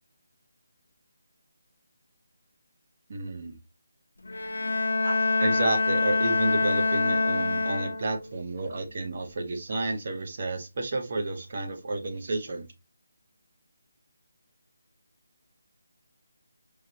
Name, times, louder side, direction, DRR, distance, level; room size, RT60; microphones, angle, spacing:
voice 1, 3.1-3.6 5.0-12.7, right 2 dB, 30° right, 4 dB, 0.7 m, -31 dB
Bowed string instrument, 4.3-8.3, left 3 dB, 85° left, 0.6 m, -26 dB
4.7 x 2.5 x 2.8 m, 0.24 s
hypercardioid pair, 180°, 0 cm